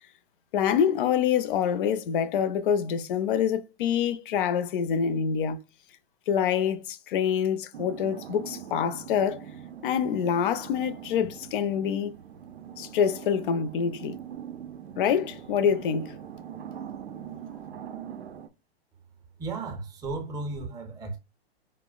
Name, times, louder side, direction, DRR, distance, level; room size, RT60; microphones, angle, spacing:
voice 1, 0.5-5.6 6.3-9.4 9.8-12.1 12.8-14.2 15.0-16.2, left 8 dB, 55° left, 0.5 m, -26 dB
sound 1, 7.7-18.5, right 9 dB, 85° right, 0.5 m, -42 dB
voice 2, 19.4-21.2, right 3 dB, 10° right, 0.6 m, -34 dB
4.5 x 2.0 x 2.3 m
hypercardioid pair, 115°, 31 cm